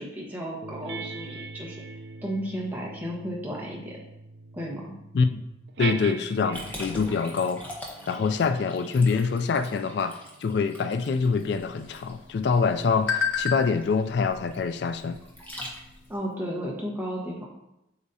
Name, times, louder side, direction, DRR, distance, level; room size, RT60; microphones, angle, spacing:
voice 1, 0.0-1.8 2.2-4.0 4.5-4.9 16.1-17.5, equal, 10° right, -4 dB, 1.2 m, -33 dB
sound 1, 0.6-7.0 7.8-12.7, right 4 dB, 60° right, 0.4 m, -42 dB
voice 2, 5.8-7.6 8.1-15.2, left 5 dB, 60° left, 10 dB, 0.3 m, -25 dB
Liquid, 6.5-16.2, equal, 10° left, 1.0 m, -43 dB
sound 2, 11.1-16.1, left 6 dB, 90° left, 0.8 m, -34 dB
8.0 x 5.1 x 2.7 m, 0.88 s
head